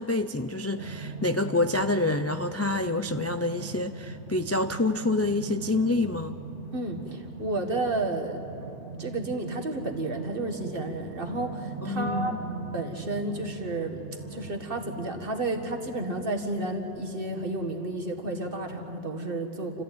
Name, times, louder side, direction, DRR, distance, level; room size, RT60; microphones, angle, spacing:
voice 1, 0.0-6.4 11.8-12.4, left 2 dB, 25° left, 8 dB, 0.3 m, -27 dB
sound 1, 0.8-18.9, right 3 dB, 80° right, 2.1 m, -41 dB
voice 2, 6.7-8.4 9.0-12.4 12.7-14.0 14.3-19.8, right 2 dB, 50° right, 3 dB, 2.0 m, -31 dB
29.5 x 14.0 x 9.3 m, 3.0 s
omnidirectional pair, 1.2 m